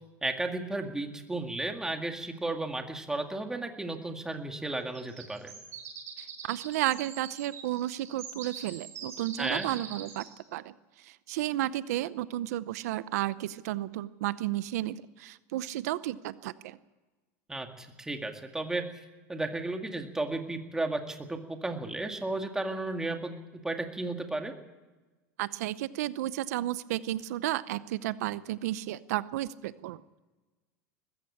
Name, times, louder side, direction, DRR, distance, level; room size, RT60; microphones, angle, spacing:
voice 1, 0.2-5.5 9.4-9.7 17.5-18.8 19.3-24.5, right 2 dB, 5° right, 5 dB, 2.0 m, -34 dB
sound 1, 4.9-10.3, right 7 dB, 35° right, 7.3 m, -44 dB
voice 2, 6.2-10.2 10.5-16.8 25.4-30.2, right 14 dB, 80° right, 16 dB, 0.7 m, -33 dB
20.5 x 15.0 x 8.6 m, 1.2 s
supercardioid pair, 140°, 8 cm